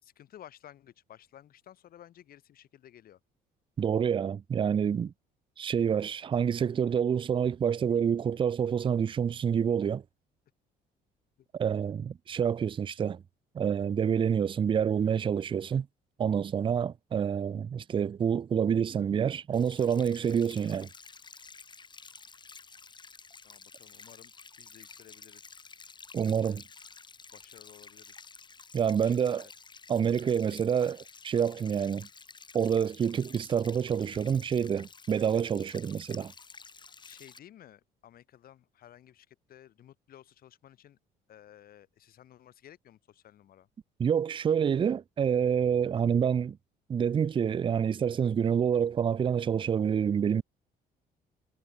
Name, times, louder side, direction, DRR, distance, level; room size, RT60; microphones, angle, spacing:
voice 1, 0.0-3.2 23.4-24.3 24.6-25.6 26.2-26.6 27.3-28.3 29.0-29.5 37.0-41.0 41.3-43.7, left 11 dB, 60° left, 6.9 m, -55 dB
voice 2, 3.8-5.1 5.6-10.0 11.5-13.2 13.5-15.9 16.2-20.9 26.1-26.6 28.7-29.5 29.9-31.0 31.2-32.1 32.5-36.3 44.0-46.6 46.9-50.4, right 7 dB, 30° right, 0.5 m, -27 dB
sound 1, 19.5-37.4, left 4 dB, 25° left, 6.1 m, -51 dB
cardioid pair, 110°, 17 cm